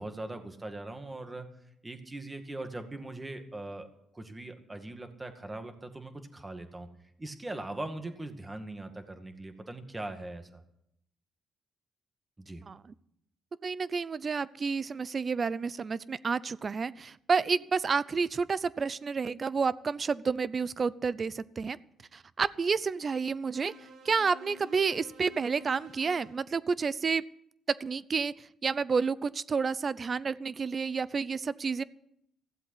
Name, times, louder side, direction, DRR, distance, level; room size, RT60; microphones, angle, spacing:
voice 1, 0.0-1.5 1.8-3.9 4.1-6.9 7.2-10.6 12.4-12.6, right 2 dB, 20° right, 6 dB, 2.1 m, -40 dB
voice 2, 13.6-21.8 22.1-23.7 24.0-27.2 27.8-28.3 28.6-31.8, right 5 dB, 40° right, 18 dB, 0.6 m, -30 dB
sound 1, 23.5-26.4, right 2 dB, 80° right, 3.4 m, -51 dB
15.5 x 7.8 x 9.7 m, 0.77 s
cardioid pair, 90°, 0 cm